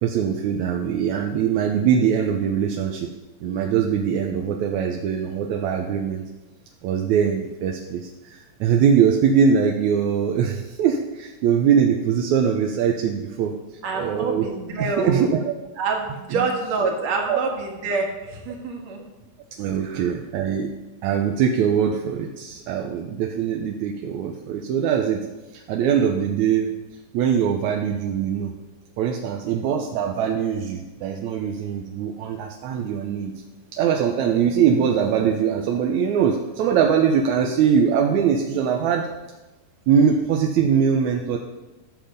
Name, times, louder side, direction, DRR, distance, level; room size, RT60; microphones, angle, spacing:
voice 1, 0.0-3.1 3.4-6.2 6.8-13.5 14.0-14.5 14.8-15.6 16.3-16.5 17.2-17.4 19.6-20.7 21.0-25.2 25.5-26.7 27.1-28.5 29.0-33.3 33.7-39.1 39.9-41.4, right 7 dB, 75° right, 2 dB, 1.9 m, -22 dB
voice 2, 13.8-15.3 15.8-19.0 19.8-20.1, right 4 dB, 60° right, 1 dB, 2.7 m, -26 dB
13.0 x 7.5 x 5.1 m, 1.1 s
omnidirectional pair, 3.8 m